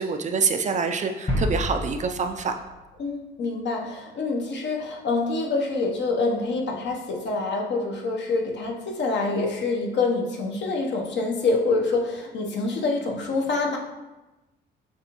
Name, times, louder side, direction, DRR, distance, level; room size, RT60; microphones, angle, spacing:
voice 1, 0.0-2.5, right 5 dB, 40° right, 6 dB, 0.4 m, -26 dB
sound 1, 1.3-3.1 3.4-3.5, left 1 dB, 35° left, 1.2 m, -29 dB
voice 2, 3.0-13.8, left 3 dB, 65° left, 1 dB, 0.9 m, -26 dB
6.7 x 2.5 x 2.9 m, 1.1 s
cardioid pair, 90°, 20 cm